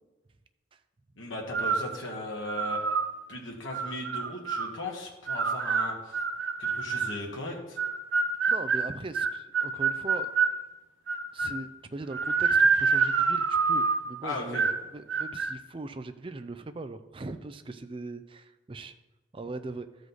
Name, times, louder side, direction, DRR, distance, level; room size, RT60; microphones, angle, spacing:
voice 1, 1.2-2.8 3.3-6.2 6.6-7.8 14.2-14.6, left 2 dB, 85° left, -1 dB, 1.6 m, -37 dB
sound 1, 1.5-1.9 2.5-3.1 3.7-4.7 5.3-7.2 7.8-10.6 11.1-11.6 12.1-14.1 14.5-14.8 15.1-15.5, right 5 dB, 75° right, 0.5 m, -27 dB
voice 2, 8.5-10.3 11.3-18.9 19.3-19.9, right 2 dB, 25° right, 10 dB, 0.4 m, -40 dB
13.0 x 5.1 x 4.0 m, 1.2 s
head